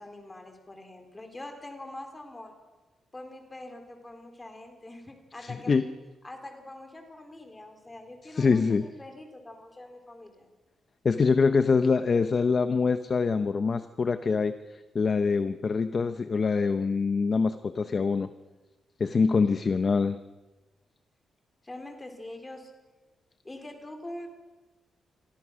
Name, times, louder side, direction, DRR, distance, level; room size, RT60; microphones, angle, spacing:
voice 1, 0.0-2.5 3.1-5.8 6.2-10.5 21.6-22.7 23.4-24.3, left 1 dB, 15° left, 5 dB, 3.7 m, -44 dB
voice 2, 5.4-5.8 8.3-8.9 11.0-14.5 14.9-18.3 19.0-20.2, left 4 dB, 30° left, 11 dB, 0.7 m, -24 dB
27.5 x 23.5 x 6.3 m, 1.2 s
wide cardioid pair, 170°, 0 cm